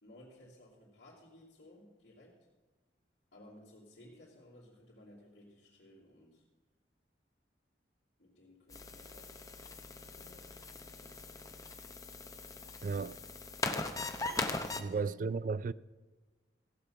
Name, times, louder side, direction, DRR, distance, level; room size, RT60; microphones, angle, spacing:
voice 1, 0.0-2.4 3.3-6.4 8.2-9.4 10.0-11.2 14.5-15.2, left 1 dB, 75° left, 3.0 m, -58 dB
sound 1, 8.7-14.8, left 3 dB, 20° left, 0.8 m, -40 dB
voice 2, 12.8-13.2 14.8-15.7, right 4 dB, 45° right, 0.3 m, -34 dB
15.5 x 8.3 x 5.8 m
head